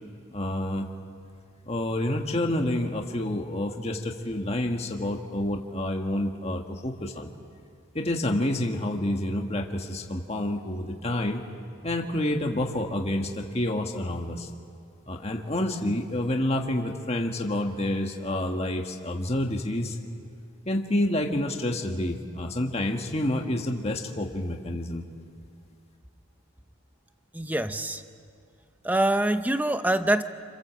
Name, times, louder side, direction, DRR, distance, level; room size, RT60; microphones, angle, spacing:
voice 1, 0.3-0.9 1.6-7.3 7.9-11.4 11.8-14.5 15.1-20.0 20.6-25.0, left 1 dB, 30° left, 2 dB, 1.6 m, -28 dB
voice 2, 27.3-28.0 28.8-30.2, right 1 dB, 10° right, 9 dB, 0.8 m, -24 dB
29.0 x 26.5 x 7.7 m, 2.3 s
head